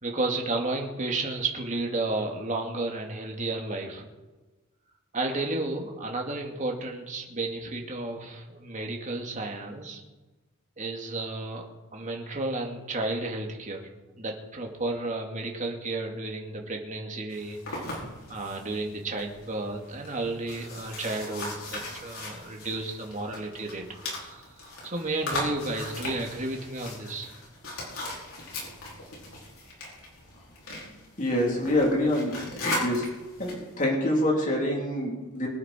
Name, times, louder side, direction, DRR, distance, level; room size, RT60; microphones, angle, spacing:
voice 1, 0.0-4.1 5.1-10.0 10.8-11.7 11.9-13.9 14.2-23.9 24.2-27.3, right 2 dB, 35° right, 1 dB, 2.3 m, -32 dB
sound 1, 17.3-33.7, left 1 dB, 70° left, 5.4 m, -38 dB
voice 2, 31.2-33.1 33.4-35.5, left 1 dB, 35° left, -2 dB, 3.5 m, -26 dB
24.0 x 9.2 x 4.5 m, 1.2 s
head